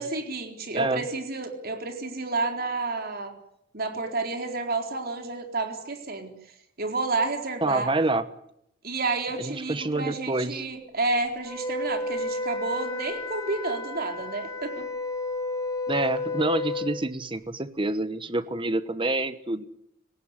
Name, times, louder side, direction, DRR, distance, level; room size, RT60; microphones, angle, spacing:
voice 1, 0.0-3.3 3.7-6.3 6.8-7.9 8.8-14.8, right 3 dB, 50° right, 4 dB, 4.1 m, -30 dB
voice 2, 7.6-8.2 9.4-10.7 15.9-19.7, right 2 dB, 25° right, 12 dB, 1.1 m, -27 dB
Wind instrument woodwind instrument, 11.4-16.9, left 2 dB, 15° left, 7.0 m, -32 dB
29.5 x 18.0 x 9.7 m, 0.77 s
head